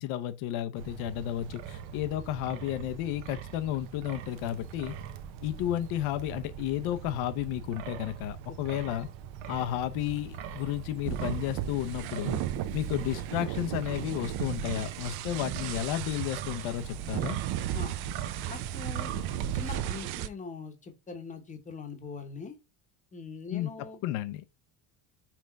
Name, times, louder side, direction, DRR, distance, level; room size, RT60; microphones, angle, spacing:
voice 1, 0.0-4.9 5.4-9.1 9.5-12.4 12.7-17.4 23.5-24.4, left 13 dB, 80° left, 0.9 m, -32 dB
Wind, 0.8-19.8, right 8 dB, 70° right, 0.9 m, -42 dB
sound 1, 11.0-20.3, right 11 dB, 55° right, 0.5 m, -35 dB
voice 2, 17.7-18.0 18.5-19.2 19.5-22.6 23.1-24.0, left 4 dB, 15° left, 0.9 m, -42 dB
5.9 x 3.5 x 5.1 m
cardioid pair, 180°, 48 cm